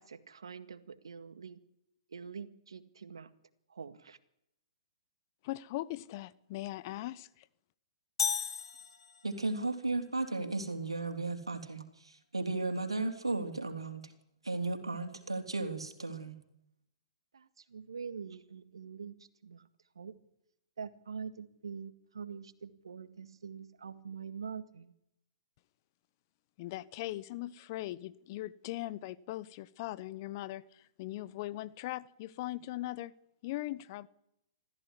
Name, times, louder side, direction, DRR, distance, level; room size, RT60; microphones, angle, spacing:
voice 1, 0.0-1.6 2.1-3.3 3.7-4.2 17.3-19.7 20.0-20.1 20.8-24.9, right 6 dB, 75° right, 11 dB, 1.9 m, -45 dB
voice 2, 5.4-7.5 26.6-33.1 33.4-34.1, left 16 dB, 40° left, 17 dB, 1.0 m, -40 dB
sound 1, 8.2-9.6, left 6 dB, 70° left, 3.0 m, -35 dB
voice 3, 9.2-14.0 14.4-16.4, right 3 dB, 90° right, 6 dB, 3.4 m, -35 dB
26.0 x 15.0 x 9.9 m, 0.82 s
figure-of-eight pair, 120°, 3 cm